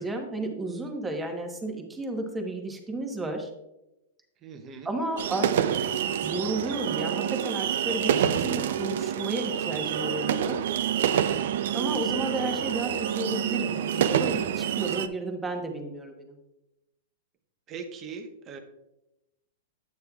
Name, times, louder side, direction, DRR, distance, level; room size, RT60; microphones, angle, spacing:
voice 1, 0.0-3.5 4.8-5.9 6.2-10.6 11.7-16.3, right 2 dB, 10° right, 3 dB, 1.1 m, -33 dB
voice 2, 4.4-4.9 17.7-18.6, right 5 dB, 25° right, 7 dB, 0.8 m, -40 dB
sound 1, 5.2-15.1, right 9 dB, 65° right, 0.4 m, -27 dB
9.4 x 8.5 x 2.4 m, 0.92 s
supercardioid pair, 160°, 0 cm